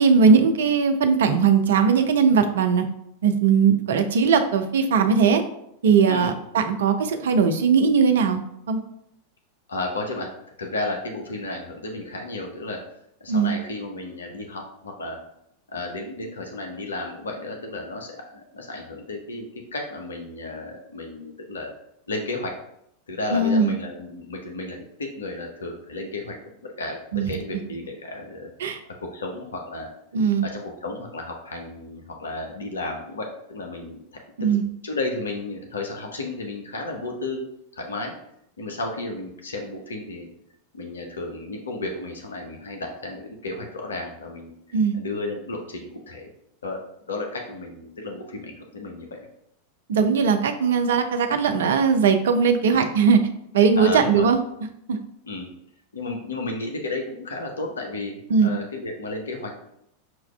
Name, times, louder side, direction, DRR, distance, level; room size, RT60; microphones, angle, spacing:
voice 1, 0.0-2.8 3.2-5.4 5.8-8.8 13.3-13.5 23.3-23.7 27.1-27.3 28.6-28.8 30.1-30.4 34.4-34.6 44.7-44.9 49.9-53.2 53.5-54.4 54.9-55.0 58.3-58.5, right 5 dB, 60° right, 7 dB, 0.4 m, -19 dB
voice 2, 9.7-10.3 10.6-12.8 13.2-15.2 15.7-21.7 22.1-22.5 23.1-28.5 29.0-29.9 30.4-34.6 34.8-37.4 37.7-38.1 38.6-40.3 40.7-46.3 46.6-49.3 53.8-54.3 55.3-55.5 55.9-59.7, left 2 dB, 70° left, 2 dB, 0.5 m, -33 dB
5.9 x 2.3 x 2.2 m, 0.76 s
figure-of-eight pair, 90°, 0 cm